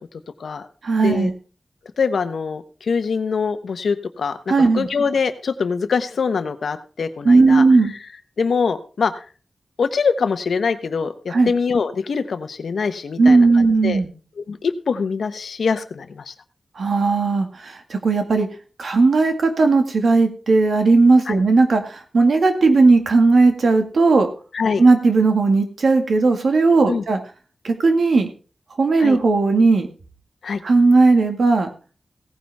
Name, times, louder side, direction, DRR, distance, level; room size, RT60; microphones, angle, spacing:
voice 1, 0.8-1.3 4.5-4.9 7.3-7.9 11.3-11.5 13.2-14.1 16.8-18.5 18.8-24.3 24.8-27.2 27.6-28.3 28.8-29.9 30.6-31.7, right 3 dB, 70° right, 6 dB, 1.9 m, -16 dB
voice 2, 2.0-8.0 8.4-9.2 9.8-14.0 14.4-16.3 21.3-21.4 24.5-24.8 26.9-27.0 29.0-29.2 30.4-30.6, left 5 dB, 85° left, 10 dB, 1.1 m, -24 dB
16.5 x 9.6 x 3.5 m, 0.37 s
wide cardioid pair, 110°, 0 cm